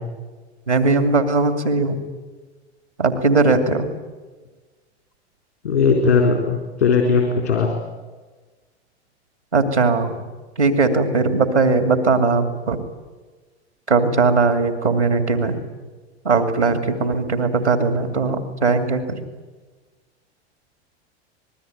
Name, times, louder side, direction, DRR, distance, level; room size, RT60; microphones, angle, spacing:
voice 1, 0.7-2.0 3.0-3.9 9.5-10.2 10.6-12.8 13.9-15.6 16.2-19.2, right 3 dB, 90° right, 7 dB, 2.6 m, -19 dB
voice 2, 5.6-7.7, left 5 dB, 80° left, 2 dB, 3.7 m, -18 dB
26.0 x 21.0 x 9.2 m, 1.3 s
figure-of-eight pair, 80°, 33 cm